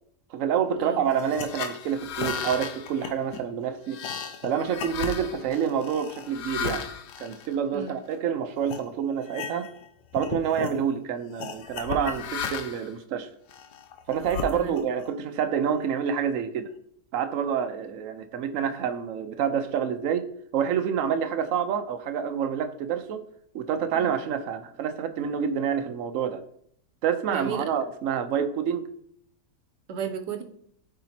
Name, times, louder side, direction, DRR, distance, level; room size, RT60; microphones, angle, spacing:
voice 1, 0.3-4.0 4.4-6.8 7.2-9.7 10.1-13.3 14.1-16.7 17.1-23.2 23.5-26.4 27.0-28.9, right 8 dB, 60° right, 8 dB, 1.0 m, -28 dB
sound 1, 1.1-8.2 8.7-8.8 9.2-9.9 10.1-10.8 11.4-12.9 13.5-15.0, left 6 dB, 90° left, 1.3 m, -35 dB
voice 2, 27.3-27.7 29.9-30.4, right 6 dB, 90° right, 6 dB, 1.4 m, -33 dB
12.5 x 5.1 x 2.9 m, 0.68 s
omnidirectional pair, 1.7 m